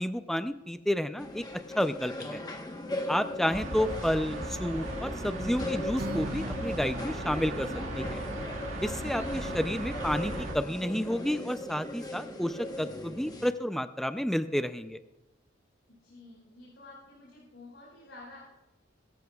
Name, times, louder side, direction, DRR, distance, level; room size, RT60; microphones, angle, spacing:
voice 1, 0.0-2.4 3.1-7.7 8.0-8.2 8.8-15.0, equal, ahead, 10 dB, 0.4 m, -31 dB
sound 1, 1.2-13.5, left 1 dB, 20° left, 1.1 m, -38 dB
sound 2, 3.5-10.5, right 2 dB, 75° right, 1.8 m, -38 dB
Acoustic guitar, 6.0-10.2, right 1 dB, 50° right, 1.3 m, -43 dB
voice 2, 15.9-18.4, left 2 dB, 65° left, -5 dB, 4.9 m, -51 dB
21.0 x 14.0 x 2.3 m, 1.0 s
head